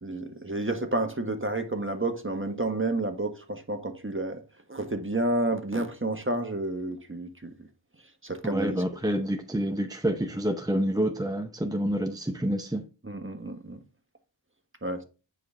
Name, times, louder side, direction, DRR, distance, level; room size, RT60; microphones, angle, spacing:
voice 1, 0.0-4.4 4.7-7.5 8.2-8.8 13.0-13.8 14.8-15.0, right 2 dB, 25° right, 1.4 m, -30 dB
voice 2, 8.4-12.8, equal, 10° right, 0.6 m, -28 dB
9.6 x 5.0 x 3.7 m
wide cardioid pair, 45°, 46 cm